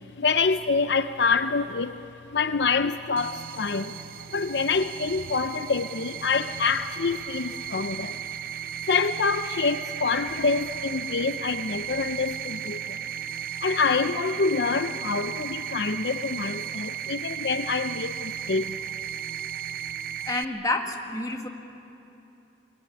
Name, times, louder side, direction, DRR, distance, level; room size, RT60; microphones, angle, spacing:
voice 1, 0.2-2.0 2.3-4.0 4.3-8.2 8.9-13.1 13.6-18.8, left 4 dB, 65° left, 11 dB, 0.6 m, -26 dB
sound 1, 3.2-20.4, right 10 dB, 55° right, 0.6 m, -35 dB
voice 2, 20.3-21.5, left 2 dB, 20° left, 3 dB, 1.8 m, -28 dB
23.5 x 21.5 x 9.8 m, 3.0 s
head